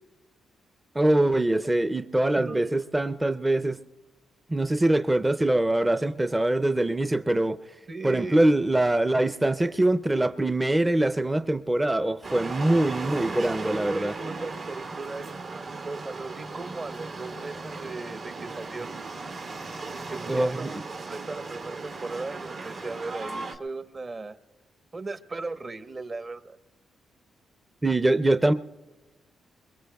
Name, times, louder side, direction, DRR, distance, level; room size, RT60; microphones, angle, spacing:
voice 1, 0.9-3.8 4.5-7.6 8.0-14.1 20.3-20.7 27.8-28.5, right 1 dB, 15° right, 9 dB, 0.5 m, -23 dB
voice 2, 2.4-2.8 7.9-8.5 13.6-18.9 19.9-20.8 21.1-24.4 24.9-26.6, right 3 dB, 40° right, 9 dB, 1.0 m, -37 dB
sound 1, 12.2-23.6, right 3 dB, 70° right, 2.1 m, -37 dB
25.5 x 22.0 x 2.3 m, 1.2 s
supercardioid pair, 55°, 0 cm